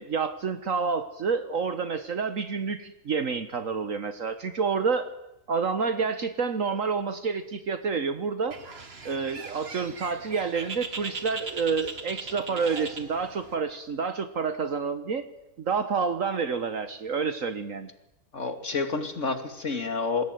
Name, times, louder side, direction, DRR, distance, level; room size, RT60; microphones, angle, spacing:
voice 1, 0.0-5.1 5.5-8.6 9.0-15.2 15.6-17.9, right 5 dB, 65° right, 10 dB, 1.6 m, -28 dB
Bird, 8.5-13.6, right 4 dB, 45° right, 2.1 m, -39 dB
voice 2, 18.3-20.2, left 4 dB, 55° left, 7 dB, 2.8 m, -29 dB
27.5 x 21.0 x 9.3 m, 0.87 s
omnidirectional pair, 1.5 m